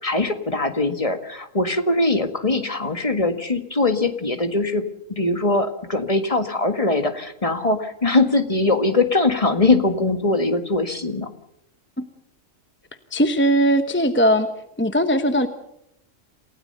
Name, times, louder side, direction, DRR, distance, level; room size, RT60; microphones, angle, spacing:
voice 1, 0.0-4.8 5.1-11.3, left 2 dB, 25° left, 7 dB, 1.7 m, -21 dB
voice 2, 13.1-14.5 14.8-15.5, equal, 10° left, 8 dB, 1.0 m, -19 dB
28.0 x 16.5 x 6.7 m, 0.76 s
omnidirectional pair, 1.3 m